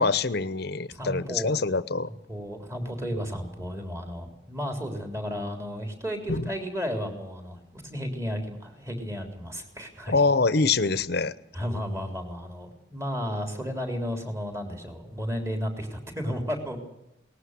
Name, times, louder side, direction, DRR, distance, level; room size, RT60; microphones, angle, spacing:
voice 1, 0.0-2.1 6.3-6.5 10.1-11.3, left 4 dB, 55° left, 15 dB, 1.0 m, -24 dB
voice 2, 0.9-1.6 2.1-10.2 11.5-16.8, equal, 15° right, 5 dB, 3.8 m, -33 dB
19.5 x 15.0 x 9.7 m, 0.90 s
head